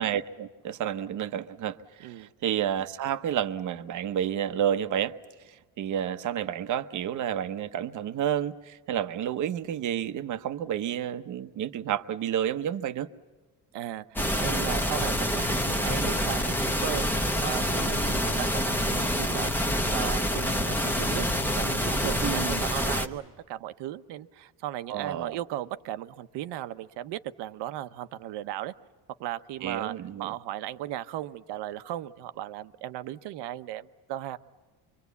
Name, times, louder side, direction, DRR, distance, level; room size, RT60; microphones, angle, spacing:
voice 1, 0.0-5.1 5.4-13.1 22.2-22.6 24.9-25.4 29.6-30.3, right 10 dB, 45° right, 0.9 m, -30 dB
voice 2, 13.7-16.6 16.8-19.5 19.9-28.7 29.2-29.9 30.2-34.4, right 13 dB, 85° right, 1.0 m, -36 dB
sound 1, 14.2-23.1, equal, 5° left, 0.9 m, -27 dB
25.0 x 24.5 x 8.3 m
cardioid pair, 160°, 40 cm